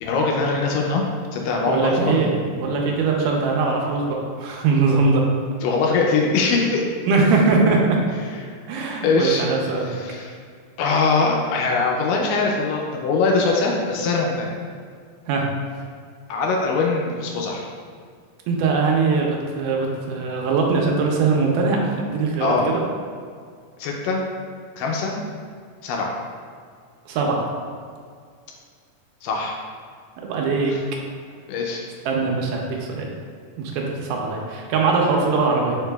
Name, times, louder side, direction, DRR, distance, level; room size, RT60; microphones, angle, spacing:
voice 1, 0.0-1.1 1.3-2.3 5.6-6.8 9.0-9.4 9.8-10.3 10.8-14.5 16.3-17.7 22.4-22.7 23.8-24.2 24.8-25.1 25.8-26.1 29.2-29.6 30.7-30.8 31.5-31.9, left 3 dB, 85° left, -1 dB, 2.1 m, -22 dB
voice 2, 1.7-5.2 7.0-8.0 8.7-9.9 15.3-15.4 18.5-22.8 27.1-27.5 30.2-30.7 32.0-33.1 33.6-35.8, right 4 dB, 80° right, 0 dB, 2.1 m, -21 dB
4.7 x 4.7 x 2.2 m, 2.1 s
omnidirectional pair, 3.8 m